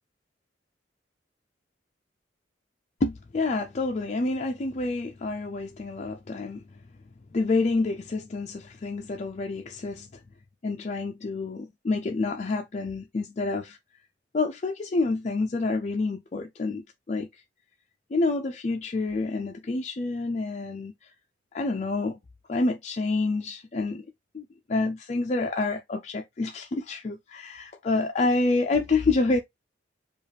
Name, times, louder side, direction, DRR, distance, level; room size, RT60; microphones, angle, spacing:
voice 1, 3.0-6.6 7.3-10.1 10.6-13.8 14.3-17.3 18.1-21.1 21.5-22.2 22.5-24.0 24.3-29.4, left 3 dB, 40° left, 0.4 m, -28 dB
5.1 x 2.4 x 3.3 m
head